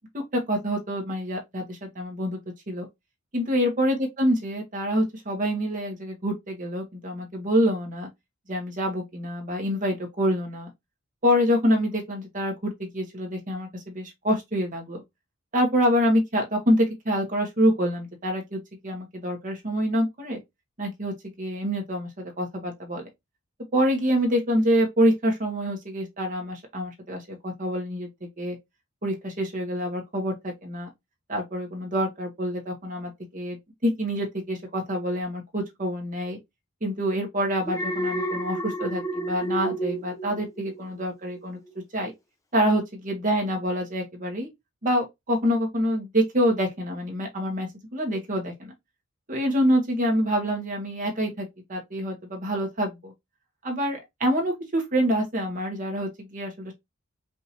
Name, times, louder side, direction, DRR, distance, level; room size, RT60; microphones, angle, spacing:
voice 1, 0.1-2.4 2.7-2.9 3.3-8.1 8.5-10.7 11.2-15.0 15.5-20.4 20.8-23.0 23.7-28.1 28.4-28.6 29.0-30.9 31.3-36.4 36.8-41.6 41.9-42.1 42.5-44.5 44.8-48.7 49.3-53.1 53.6-56.7, equal, 40° right, 1.4 m, -26 dB
Alarm, 37.7-41.0 41.4-41.7, right 1 dB, 15° left, 0.7 m, -30 dB
5.1 x 2.7 x 2.9 m
head